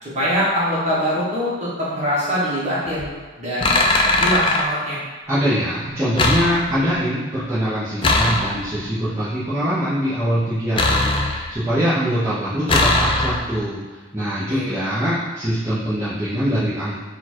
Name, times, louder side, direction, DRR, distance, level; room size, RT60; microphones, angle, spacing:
voice 1, 0.0-3.1 3.4-3.9 4.2-5.0 14.5-14.8, equal, 35° right, -8 dB, 1.3 m, -23 dB
sound 1, 2.9-3.1 3.6-4.7 6.2-7.0 8.0-8.9 10.8-11.7 12.7-13.6, left 2 dB, 25° left, 0.3 m, -20 dB
voice 2, 5.3-13.8 14.1-17.0, equal, 15° right, -12 dB, 0.7 m, -23 dB
4.2 x 2.4 x 4.3 m, 1.4 s
head